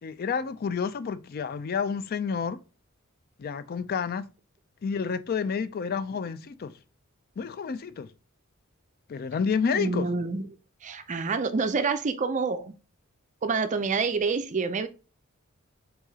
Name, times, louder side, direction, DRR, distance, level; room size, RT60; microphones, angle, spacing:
voice 1, 0.0-2.6 3.4-4.2 4.8-6.7 7.4-8.1 9.1-10.1, left 6 dB, 45° left, 0.4 m, -29 dB
voice 2, 9.7-10.4 10.8-12.7 13.4-14.9, right 4 dB, 35° right, 0.4 m, -27 dB
4.7 x 3.9 x 2.8 m
head